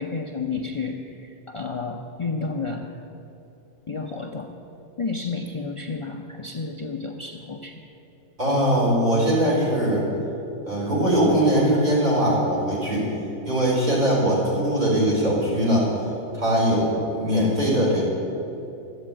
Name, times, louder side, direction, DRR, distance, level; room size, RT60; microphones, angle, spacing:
voice 1, 0.0-2.9 3.9-4.5 5.0-7.8, left 4 dB, 45° left, 2 dB, 0.4 m, -31 dB
voice 2, 8.4-10.0 10.7-13.1 13.4-15.9 16.3-18.1, equal, 30° right, -6 dB, 4.4 m, -21 dB
13.0 x 8.5 x 8.8 m, 2.9 s
omnidirectional pair, 1.6 m